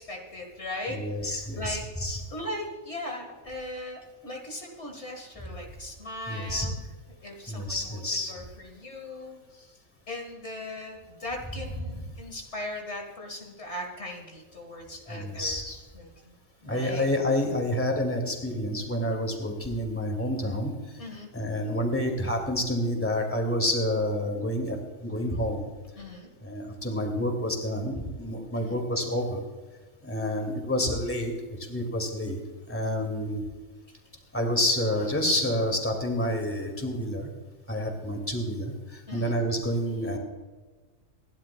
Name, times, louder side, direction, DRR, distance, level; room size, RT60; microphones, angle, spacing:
voice 1, 0.0-1.8 2.3-6.7 7.2-9.8 10.1-15.6 15.9-16.4 16.6-17.1 21.0-21.3 26.0-26.3 28.6-28.8 39.1-39.3, left 1 dB, 55° left, 2 dB, 2.1 m, -39 dB
voice 2, 0.9-2.2 5.4-5.5 6.3-6.7 7.5-8.3 12.0-12.1 15.1-15.8 16.6-20.7 21.3-25.7 26.4-29.4 30.0-32.4 32.7-33.4 34.3-37.3 37.7-40.2, left 1 dB, 10° left, 2 dB, 2.3 m, -29 dB
27.5 x 11.5 x 2.3 m, 1.3 s
omnidirectional pair, 1.4 m